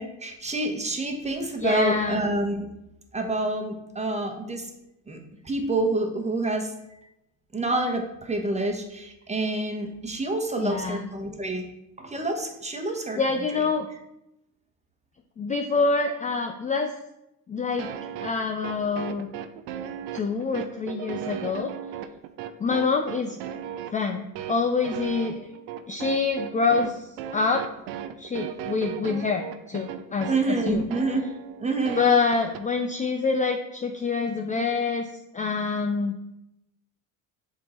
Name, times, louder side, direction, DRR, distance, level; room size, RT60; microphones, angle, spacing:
voice 1, 0.0-2.6 3.1-4.6 5.1-5.2 5.4-6.7 7.5-11.6 12.0-13.2 30.3-31.2 31.6-32.0, right 2 dB, 15° right, 3 dB, 1.1 m, -27 dB
voice 2, 1.6-2.2 10.6-11.1 13.1-13.9 15.4-16.9 17.5-17.9 18.2-19.3 20.1-21.7 22.6-23.4 23.9-25.5 25.9-27.6 28.2-30.8 32.0-35.1 35.3-36.1, left 4 dB, 20° left, 4 dB, 0.4 m, -26 dB
sound 1, 17.8-32.6, right 10 dB, 85° right, 0.6 m, -36 dB
6.6 x 3.7 x 4.3 m, 0.87 s
supercardioid pair, 100°, 39 cm